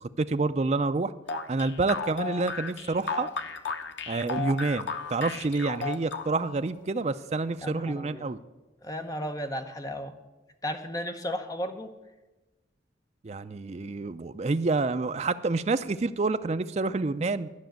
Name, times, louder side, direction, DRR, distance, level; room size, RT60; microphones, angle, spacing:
voice 1, 0.0-1.1 1.5-3.3 4.1-8.4 13.2-17.5, right 3 dB, 35° right, 11 dB, 0.4 m, -28 dB
sound 1, 1.3-6.6, left 4 dB, 85° left, 0.8 m, -34 dB
voice 2, 7.6-8.3 8.8-10.2 10.6-11.9, equal, 20° left, 6 dB, 0.8 m, -34 dB
11.5 x 6.0 x 9.0 m, 1.1 s
head